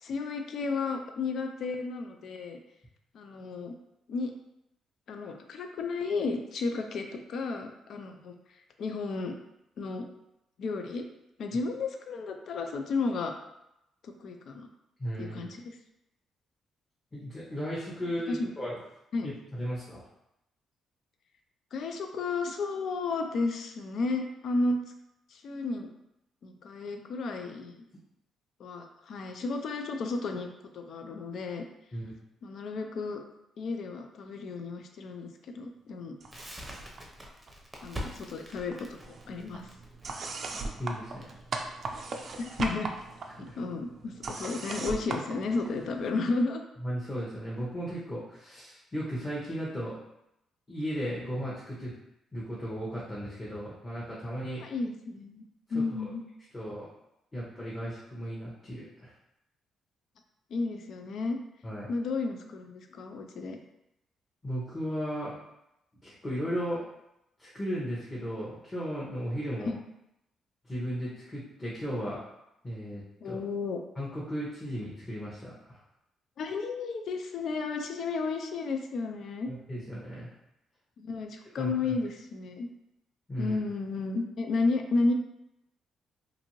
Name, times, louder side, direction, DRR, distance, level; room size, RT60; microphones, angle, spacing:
voice 1, 0.0-2.6 3.1-3.8 4.1-4.3 5.1-8.3 8.8-9.4 9.8-10.1 10.6-11.0 11.4-13.3 14.0-14.7 15.2-15.8 18.3-18.5 19.1-19.3 21.7-24.8 25.3-25.9 26.4-27.8 28.6-30.5 30.7-31.6 32.4-33.2 33.6-36.2 37.8-39.7 42.4-42.9 43.6-46.6 54.6-55.4 55.7-56.2 60.5-61.4 61.9-63.6 69.6-69.8 73.2-73.8 76.4-79.5 81.0-82.7 83.4-85.1, left 3 dB, 65° left, 4 dB, 0.3 m, -33 dB
voice 2, 15.0-15.4 17.1-18.8 19.2-20.0 31.9-32.1 40.8-41.3 43.5-43.6 46.8-50.0 50.7-51.9 52.3-54.6 55.7-56.1 56.5-56.9 57.3-59.1 61.6-61.9 64.4-65.4 66.0-66.8 67.4-69.7 70.6-72.2 72.6-73.4 74.0-75.8 79.5-80.3 81.6-81.7 83.3-83.6, equal, 20° left, -7 dB, 0.8 m, -35 dB
sound 1, 36.2-37.0 37.3-38.3 38.6-46.1, right 3 dB, 50° right, 0.3 m, -39 dB
Crackle, 36.3-43.1, equal, 10° right, 0.6 m, -44 dB
2.6 x 2.5 x 2.9 m, 0.84 s
cardioid pair, 90°, 0 cm